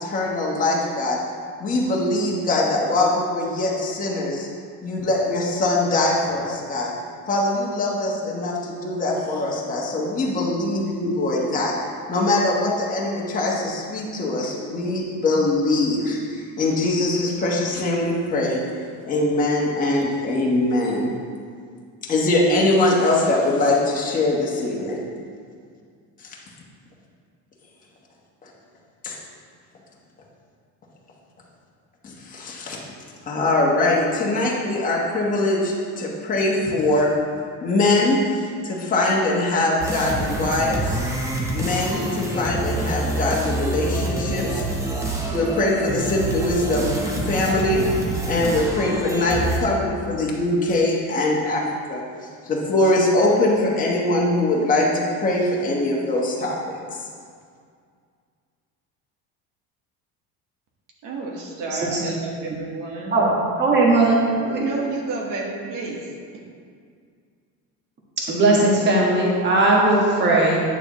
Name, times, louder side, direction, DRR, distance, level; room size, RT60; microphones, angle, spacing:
voice 1, 0.0-1.2 1.6-4.5 4.8-6.9 7.3-18.6 19.0-21.1 22.0-25.0 26.2-26.3 28.4-28.5 29.0-29.2 32.0-32.8 33.3-37.1 37.6-40.9 41.5-44.6 45.3-47.8 48.3-51.6 51.9-52.0 52.4-56.8, left 2 dB, 25° left, -4 dB, 1.2 m, -22 dB
sound 1, 39.8-49.6, right 1 dB, 10° right, 0.7 m, -26 dB
voice 2, 61.0-63.1 64.4-66.0, right 3 dB, 60° right, -2 dB, 1.4 m, -30 dB
voice 3, 61.7-62.1 63.1-63.3 63.6-64.6 68.3-70.6, right 2 dB, 30° right, -3 dB, 1.6 m, -18 dB
9.3 x 6.8 x 3.1 m, 2.1 s
cardioid pair, 150°, 36 cm